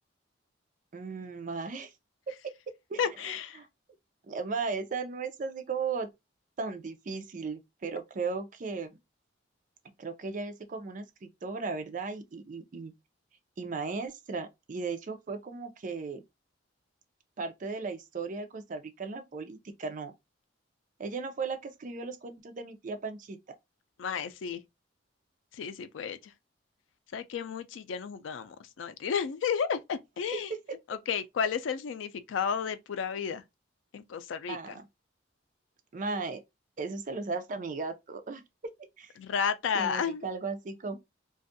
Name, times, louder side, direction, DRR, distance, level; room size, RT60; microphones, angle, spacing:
voice 1, 0.9-1.9 2.9-3.0 3.6-3.7 4.3-6.1 6.6-9.0 10.0-12.9 13.6-16.2 17.4-20.1 21.0-23.4 30.3-30.8 34.5-34.9 35.9-36.4 36.8-38.4 39.0-39.1 39.7-41.0, right 4 dB, 45° right, 0.4 m, -36 dB
voice 2, 3.0-3.6 24.0-24.6 25.5-26.3 27.1-30.5 30.9-33.4 33.9-34.8 39.2-40.3, left 7 dB, 85° left, 0.4 m, -32 dB
2.5 x 2.3 x 2.5 m
head